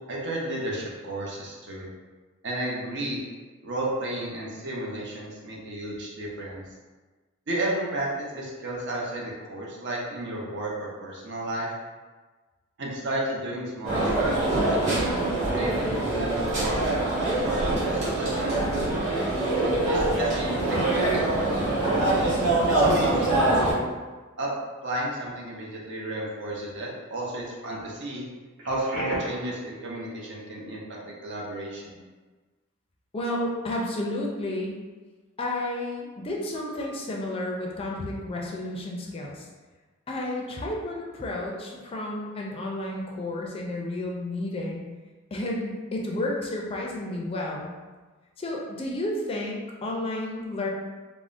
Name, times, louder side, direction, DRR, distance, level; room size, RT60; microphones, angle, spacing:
voice 1, 0.0-1.9 2.4-3.2 3.6-6.6 7.5-11.7 12.8-14.8 15.4-18.6 19.9-22.0 22.7-23.9 24.4-24.5 24.8-28.3 28.7-32.0, right 1 dB, 60° right, -3 dB, 0.6 m, -33 dB
sound 1, 13.8-23.7, right 2 dB, 35° right, 1.0 m, -24 dB
Telephone, 19.5-20.2 20.7-20.8 22.6-22.7 23.1-23.3 28.6-29.4 36.5-36.7, equal, 80° right, 1.0 m, -30 dB
voice 2, 33.1-34.7 35.4-39.4 40.1-44.8 45.3-47.7 48.4-50.7, left 1 dB, 25° left, -2 dB, 0.4 m, -31 dB
3.4 x 2.0 x 2.5 m, 1.3 s
head